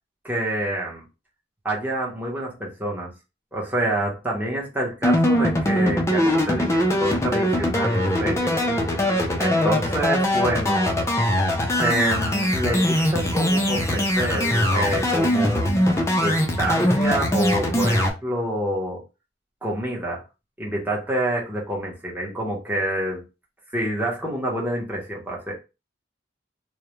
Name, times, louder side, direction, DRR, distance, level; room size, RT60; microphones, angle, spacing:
voice 1, 0.2-1.0 1.6-3.1 3.5-8.6 9.4-11.2 11.8-15.7 16.2-19.0 19.6-20.2 20.6-23.2 23.7-25.5, right 1 dB, 10° right, 0.7 m, -27 dB
sound 1, 5.0-18.1, left 1 dB, 15° left, 0.4 m, -21 dB
2.3 x 2.0 x 2.9 m
head